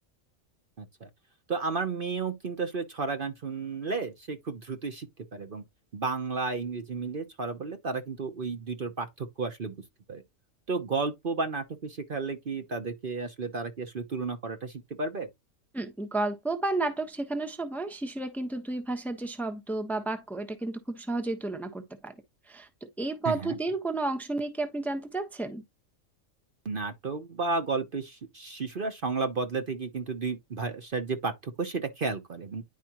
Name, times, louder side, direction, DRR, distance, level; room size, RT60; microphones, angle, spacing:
voice 1, 0.8-1.1 1.5-5.6 5.9-9.7 10.1-10.2 10.7-15.3 23.2-23.6 26.6-32.6, right 4 dB, 45° right, 1.1 m, -32 dB
voice 2, 15.7-22.1 22.5-22.7 23.0-25.6, right 2 dB, ahead, 1.0 m, -32 dB
10.5 x 5.0 x 3.0 m
omnidirectional pair, 1.4 m